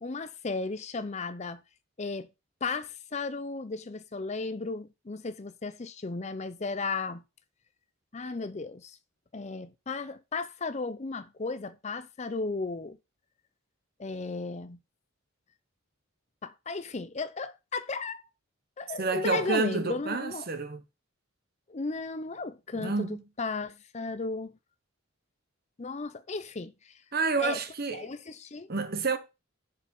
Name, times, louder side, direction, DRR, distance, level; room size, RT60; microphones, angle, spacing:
voice 1, 0.0-1.6 2.0-2.3 2.6-7.2 8.1-9.0 9.3-13.0 14.0-14.8 16.4-18.2 18.8-20.5 21.7-24.5 25.8-26.9 27.4-27.6 27.9-28.7, left 3 dB, 35° left, 0.5 m, -35 dB
voice 2, 19.0-20.8 22.8-23.2 27.1-28.1 28.7-29.2, right 4 dB, 45° right, 1.0 m, -29 dB
6.7 x 5.2 x 5.3 m
head